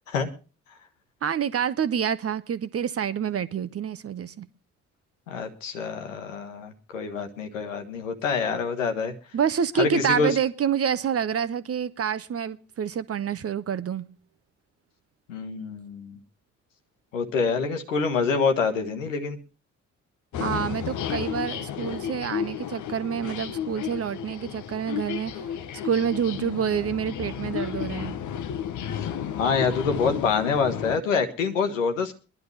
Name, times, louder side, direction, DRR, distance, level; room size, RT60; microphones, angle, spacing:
voice 1, 1.2-4.5 9.3-14.1 20.4-25.3 25.8-28.2, right 8 dB, 40° right, 0.9 m, -27 dB
voice 2, 5.3-9.1 9.8-10.3 15.3-16.2 17.1-19.4 26.4-26.6 29.0-32.2, left 5 dB, 85° left, 1.1 m, -26 dB
sound 1, 20.3-31.0, left 9 dB, 50° left, 0.9 m, -33 dB
22.5 x 11.0 x 3.2 m
figure-of-eight pair, 45°, 37 cm